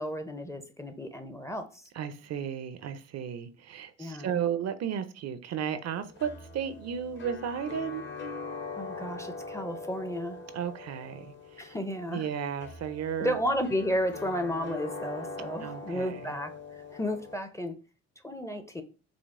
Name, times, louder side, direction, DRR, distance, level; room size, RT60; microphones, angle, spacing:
voice 1, 0.0-1.8 4.0-4.3 8.8-10.4 11.6-12.3 13.2-17.7 18.2-18.8, equal, 10° left, 0.5 m, -33 dB
voice 2, 1.9-8.1 10.5-11.8 12.1-13.4 15.6-16.3, right 8 dB, 60° right, 0.5 m, -34 dB
sound 1, 5.8-17.4, left 3 dB, 40° left, 0.7 m, -42 dB
5.0 x 2.0 x 3.5 m
cardioid pair, 90°, 30 cm